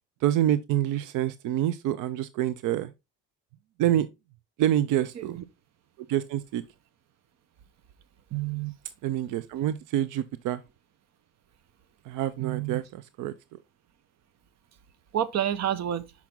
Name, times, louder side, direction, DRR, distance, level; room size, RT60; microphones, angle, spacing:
voice 1, 0.2-2.9 3.8-4.1 4.6-5.4 6.1-6.6 9.0-10.6 12.1-13.3, right 12 dB, 90° right, 0.5 m, -27 dB
voice 2, 8.3-8.7 12.4-12.8 15.1-16.1, right 11 dB, 60° right, 0.9 m, -29 dB
5.9 x 5.9 x 3.6 m
cardioid pair, 90°, 30 cm